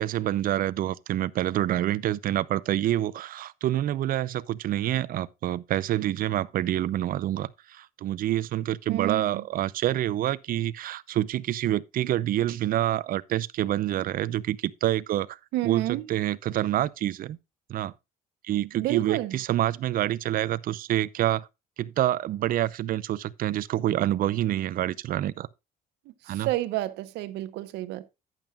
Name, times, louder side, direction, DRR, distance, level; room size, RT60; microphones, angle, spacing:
voice 1, 0.0-15.4 15.6-17.4 17.7-17.9 18.4-21.5 21.8-25.5 26.3-26.5, right 13 dB, 55° right, 0.6 m, -27 dB
voice 2, 8.9-9.4 15.5-16.0 18.7-19.4 26.3-28.0, right 16 dB, 85° right, 1.0 m, -30 dB
11.5 x 9.0 x 2.4 m
cardioid pair, 110°, 17 cm